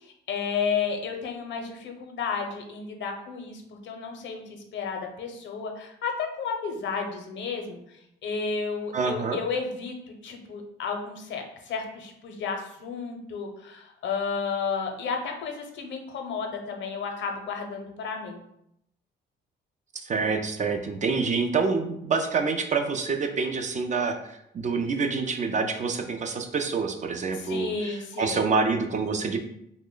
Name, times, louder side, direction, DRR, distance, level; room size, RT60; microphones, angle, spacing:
voice 1, 0.0-9.9 10.2-18.4 27.3-28.4, left 5 dB, 65° left, 3 dB, 0.6 m, -32 dB
voice 2, 8.9-9.4 20.0-29.4, right 4 dB, 40° right, 5 dB, 0.4 m, -27 dB
2.9 x 2.1 x 3.7 m, 0.77 s
cardioid pair, 90°, 20 cm